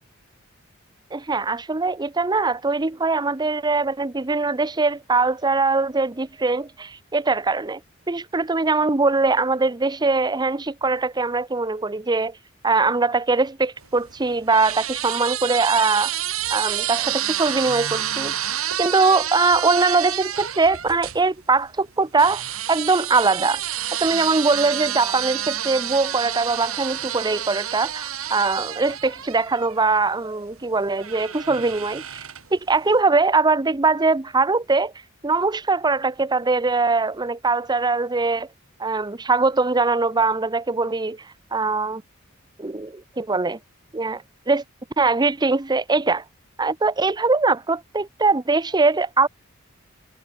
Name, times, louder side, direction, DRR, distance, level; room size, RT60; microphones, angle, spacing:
voice 1, 1.1-7.8 8.1-12.3 12.6-16.1 16.5-18.3 18.8-22.4 22.7-23.6 24.0-32.2 32.5-34.9 35.2-38.5 38.8-41.2 41.5-42.0 42.6-43.6 43.9-44.6 45.0-46.2 46.6-49.3, right 3 dB, 20° right, 0.7 m, -21 dB
sound 1, 13.8-21.2 22.2-30.1 31.0-32.6, right 11 dB, 80° right, 3.8 m, -29 dB
head